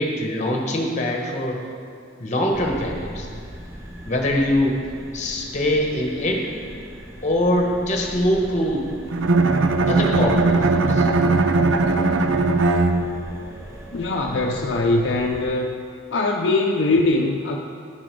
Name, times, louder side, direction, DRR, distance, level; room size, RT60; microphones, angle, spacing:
voice 1, 0.0-1.6 2.2-3.3 4.1-4.8 5.1-6.5 7.2-8.9 9.9-11.1, left 1 dB, 35° left, 1 dB, 1.1 m, -23 dB
sound 1, 2.5-15.5, equal, 15° right, 0.7 m, -40 dB
Bowed string instrument, 9.1-13.4, right 3 dB, 80° right, 0.5 m, -19 dB
voice 2, 13.9-15.7 16.1-17.6, left 2 dB, 65° left, 1 dB, 0.5 m, -21 dB
10.0 x 6.2 x 4.6 m, 2.4 s
head